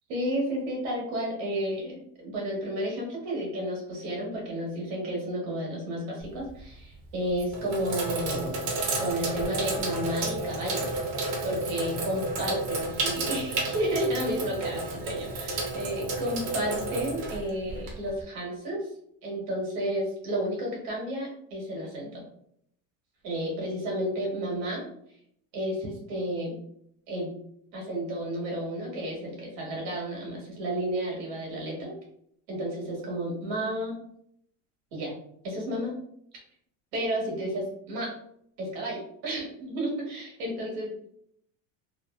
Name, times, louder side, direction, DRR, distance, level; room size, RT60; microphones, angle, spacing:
voice 1, 0.1-8.6 9.0-10.9 11.4-18.9 19.2-22.2 23.2-24.8 25.5-26.6 27.1-27.3 27.7-31.9 32.5-33.9 34.9-35.1 35.4-35.9 36.9-38.1 38.6-41.1, equal, 85° right, -2 dB, 1.3 m, -32 dB
Sink (filling or washing), 6.2-6.6 7.3-18.2, right 2 dB, 60° right, 0.8 m, -31 dB
2.9 x 2.1 x 2.2 m, 0.70 s
cardioid pair, 155°, 37 cm